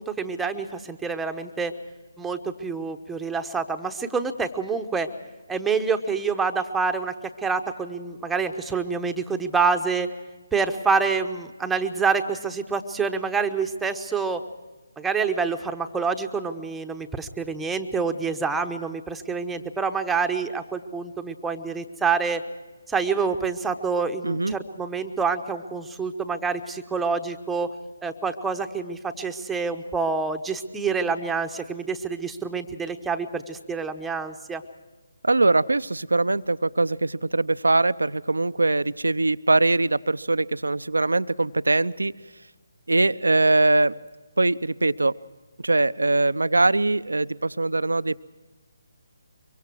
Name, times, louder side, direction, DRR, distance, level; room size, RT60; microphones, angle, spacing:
voice 1, 0.0-1.7 2.2-5.1 5.5-7.1 7.4-10.1 10.5-14.4 15.0-22.4 22.9-27.7 28.0-34.6, right 5 dB, 5° right, 5 dB, 1.0 m, -27 dB
voice 2, 24.2-24.5 35.2-42.1 42.9-43.9 44.4-45.1 45.6-48.2, right 2 dB, 80° right, 15 dB, 0.6 m, -22 dB
24.0 x 23.5 x 4.6 m, 1.2 s
figure-of-eight pair, 145°, 0 cm